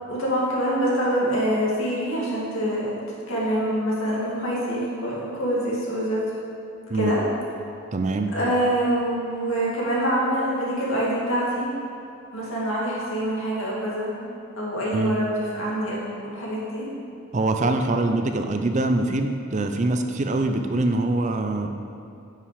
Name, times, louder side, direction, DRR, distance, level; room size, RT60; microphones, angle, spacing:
voice 1, 0.1-6.2 6.9-7.2 8.3-11.7 12.3-14.1 14.6-16.9, equal, 70° left, -5 dB, 2.3 m, -25 dB
voice 2, 7.9-8.3 14.9-15.1 17.3-21.9, right 2 dB, 35° right, 6 dB, 0.4 m, -24 dB
9.6 x 5.8 x 5.0 m, 2.6 s
head